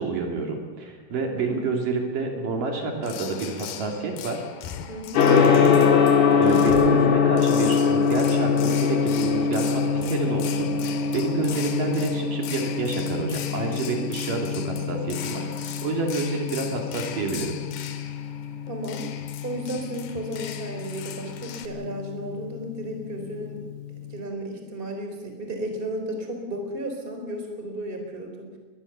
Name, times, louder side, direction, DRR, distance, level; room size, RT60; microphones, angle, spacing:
voice 1, 0.0-4.4 5.1-5.7 6.4-17.5, right 4 dB, 65° right, 2 dB, 4.3 m, -28 dB
voice 2, 1.4-1.7 4.9-5.3 18.7-19.1 19.4-23.6 24.1-28.5, right 1 dB, 15° right, 4 dB, 3.5 m, -33 dB
sound 1, 3.0-21.7, left 9 dB, 75° left, 3.1 m, -39 dB
Gong, 5.1-24.1, left 6 dB, 55° left, 3.4 m, -24 dB
22.0 x 21.0 x 7.0 m, 1.2 s
omnidirectional pair, 4.2 m